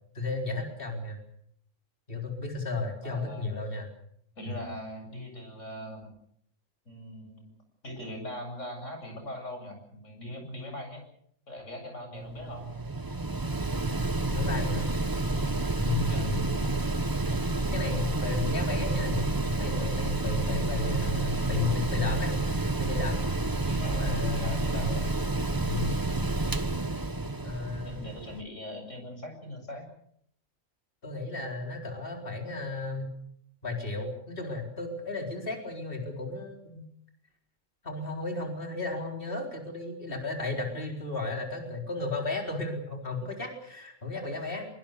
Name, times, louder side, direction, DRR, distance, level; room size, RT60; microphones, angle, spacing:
voice 1, 0.1-1.2 2.1-3.9 4.4-4.6 14.3-14.9 15.8-16.5 17.7-23.2 23.8-25.1 25.6-26.0 27.4-28.0 31.0-33.1 33.6-36.8 37.8-44.7, left 3 dB, 45° left, 2 dB, 4.5 m, -34 dB
voice 2, 3.0-3.5 4.4-6.1 6.9-7.4 7.8-11.0 11.5-12.7 16.1-16.3 23.7-25.1 26.0-26.4 27.8-29.9, left 1 dB, 70° left, 4 dB, 8.1 m, -41 dB
Mechanical fan, 12.1-28.4, right 2 dB, 20° right, 1.0 m, -29 dB
24.5 x 23.5 x 6.8 m, 0.68 s
omnidirectional pair, 1.3 m